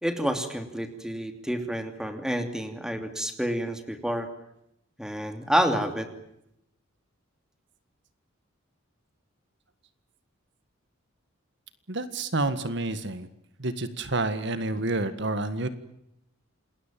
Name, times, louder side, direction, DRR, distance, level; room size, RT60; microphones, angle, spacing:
voice 1, 0.0-4.3 5.0-6.1, equal, 5° right, 7 dB, 2.8 m, -29 dB
voice 2, 11.9-13.3 13.6-15.7, right 2 dB, 55° right, 12 dB, 1.7 m, -29 dB
28.0 x 20.5 x 7.5 m, 0.79 s
head